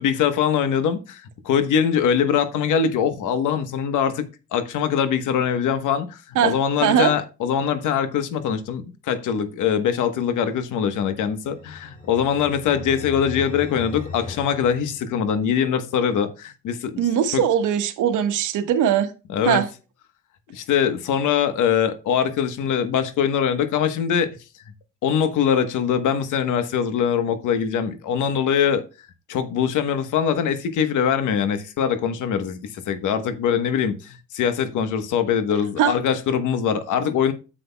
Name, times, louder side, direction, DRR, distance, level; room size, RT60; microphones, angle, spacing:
voice 1, 0.0-4.3 4.5-17.0 17.3-17.4 19.3-19.6 20.5-24.4 25.0-28.8 29.3-37.3, left 8 dB, 85° left, 1.2 m, -22 dB
voice 2, 6.8-7.1 17.0-19.1 19.4-19.7 35.8-35.9, right 9 dB, 80° right, 1.3 m, -20 dB
sound 1, 11.1-15.6, left 3 dB, 25° left, 2.8 m, -38 dB
10.0 x 7.7 x 2.2 m
cardioid pair, 90°, 30 cm